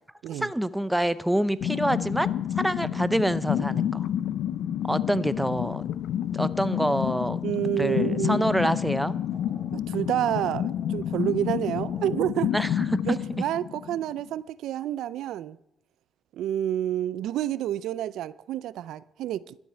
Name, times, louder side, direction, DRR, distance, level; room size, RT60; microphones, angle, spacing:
voice 1, 0.3-4.1 4.8-5.8 6.3-7.4 7.8-9.2 12.5-13.1, right 1 dB, 5° right, 0.6 m, -26 dB
sound 1, 1.6-14.3, left 10 dB, 80° left, 0.5 m, -29 dB
voice 2, 7.4-8.5 9.7-12.5 13.0-15.6 16.3-19.6, right 12 dB, 80° right, 0.4 m, -29 dB
sound 2, 7.6-9.7 10.0-12.1, right 2 dB, 30° right, 3.2 m, -54 dB
12.5 x 8.1 x 7.2 m
cardioid pair, 90°, 0 cm